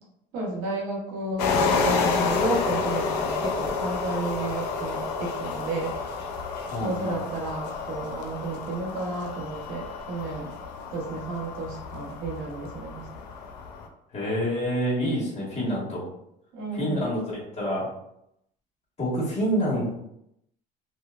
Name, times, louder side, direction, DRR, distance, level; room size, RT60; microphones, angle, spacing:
voice 1, 0.3-5.9 6.8-10.5 10.9-13.0 16.5-17.0, right 2 dB, 80° right, -3 dB, 1.0 m, -32 dB
sound 1, 1.4-13.9, left 5 dB, 90° left, 0.4 m, -30 dB
voice 2, 6.7-7.2 14.1-16.0 16.7-17.9 19.0-19.9, equal, 30° left, -5 dB, 1.4 m, -27 dB
2.7 x 2.1 x 2.4 m, 0.78 s
supercardioid pair, 80°, 21 cm